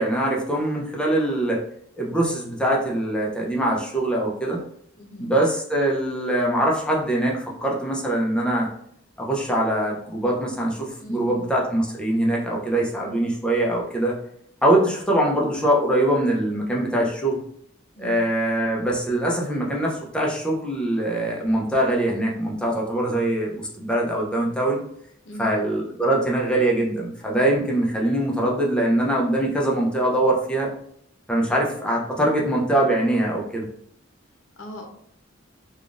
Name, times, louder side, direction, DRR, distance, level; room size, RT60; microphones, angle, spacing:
voice 1, 0.0-1.6 2.0-4.6 5.2-8.7 9.2-14.2 14.6-17.4 18.0-24.8 25.4-30.7 31.3-33.6, right 1 dB, 5° left, -2 dB, 0.5 m, -23 dB
voice 2, 5.0-5.3 11.0-11.5 18.0-18.2 25.2-25.7 34.6-34.9, equal, 75° left, 2 dB, 0.7 m, -39 dB
3.5 x 2.3 x 2.4 m, 0.67 s
head